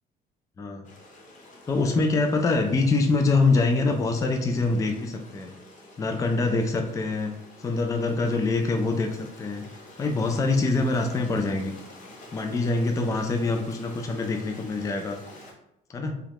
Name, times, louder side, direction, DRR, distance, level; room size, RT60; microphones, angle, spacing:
voice 1, 0.6-0.9 1.7-5.5 6.0-7.3 7.6-9.6 10.0-11.7 12.3-15.2 15.9-16.2, left 3 dB, 20° left, 4 dB, 0.3 m, -24 dB
Stream, 0.8-15.5, left 1 dB, 50° left, 0.8 m, -48 dB
3.0 x 2.3 x 3.4 m, 0.81 s
cardioid pair, 110°, 17 cm